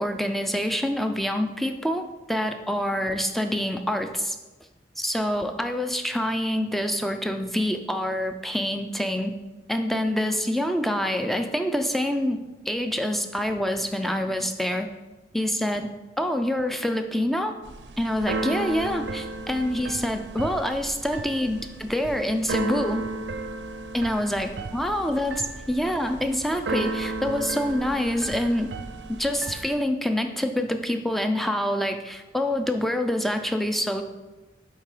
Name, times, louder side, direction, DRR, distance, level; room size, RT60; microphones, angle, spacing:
voice 1, 0.0-4.4 5.0-9.3 9.7-14.9 15.3-15.9 16.2-17.6 18.0-23.0 23.9-28.7 29.1-34.0, left 1 dB, ahead, 6 dB, 0.4 m, -26 dB
Keyboard (musical), 17.6-29.7, right 2 dB, 90° right, 0.6 m, -34 dB
8.1 x 3.8 x 4.9 m, 1.1 s
head